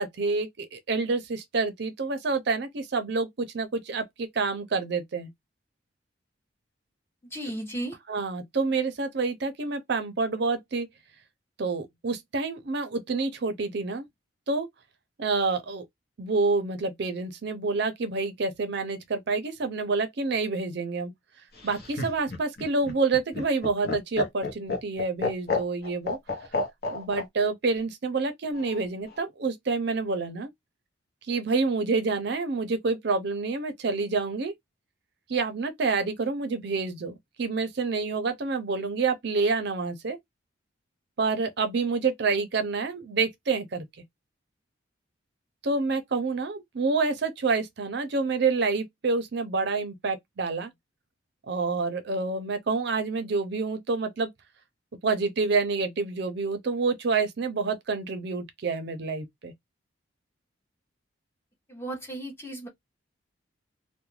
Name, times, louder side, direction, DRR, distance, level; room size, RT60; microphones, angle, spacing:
voice 1, 0.0-5.3 8.1-10.9 11.6-14.1 14.5-14.7 15.2-15.8 16.2-21.1 21.6-26.2 26.9-30.5 31.3-34.5 35.3-40.2 41.2-43.9 45.6-50.7 51.5-54.3 55.0-59.5, right 4 dB, 55° right, 0.5 m, -28 dB
voice 2, 7.3-8.0 61.7-62.7, right 1 dB, 10° left, 0.7 m, -35 dB
Laughter, 21.6-27.2 28.5-29.2, left 3 dB, 50° left, 0.8 m, -31 dB
2.3 x 2.1 x 3.0 m
head